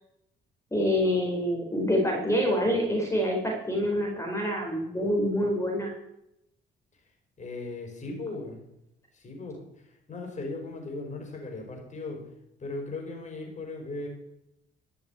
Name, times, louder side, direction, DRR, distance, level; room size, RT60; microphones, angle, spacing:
voice 1, 0.7-5.9, equal, 15° left, 1 dB, 4.0 m, -26 dB
voice 2, 7.4-8.6 9.1-9.6 9.9-12.2 12.6-14.1, left 3 dB, 35° left, 1 dB, 4.9 m, -37 dB
13.0 x 6.9 x 8.7 m, 0.81 s
cardioid pair, 90°, 20 cm